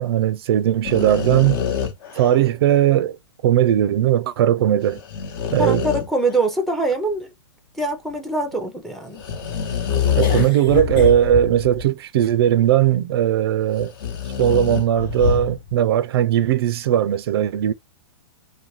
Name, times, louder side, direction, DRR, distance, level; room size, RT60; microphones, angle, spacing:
voice 1, 0.0-1.6 2.2-3.2 3.4-5.0 5.5-5.9 10.1-13.9 14.4-17.7, right 11 dB, 65° right, 0.4 m, -18 dB
sound 1, 0.8-2.5 4.9-6.3 9.1-11.9 12.5-12.6 13.8-15.7, left 8 dB, 55° left, 0.9 m, -25 dB
voice 2, 5.6-7.3 7.7-9.2, right 2 dB, ahead, 0.5 m, -23 dB
2.5 x 2.2 x 3.1 m
hypercardioid pair, 135°, 14 cm